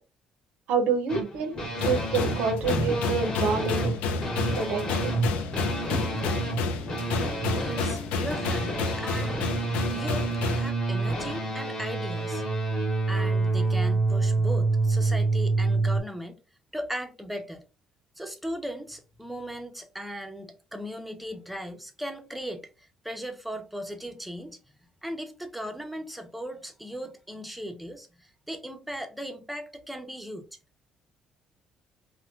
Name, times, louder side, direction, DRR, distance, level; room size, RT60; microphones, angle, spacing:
voice 1, 0.7-1.6 1.8-4.0 4.6-5.1 5.9-6.2, right 5 dB, 85° right, 0.6 m, -27 dB
sound 1, 1.1-16.0, right 3 dB, 35° left, 1.0 m, -28 dB
sound 2, 1.8-10.7, left 4 dB, 85° left, 0.4 m, -30 dB
voice 2, 7.5-9.6 9.9-12.4 13.1-16.4 16.7-17.6 18.2-22.7 23.0-24.6 25.0-28.1 28.5-30.5, equal, ahead, 0.5 m, -37 dB
3.0 x 2.1 x 2.4 m
cardioid pair, 110°, 2 cm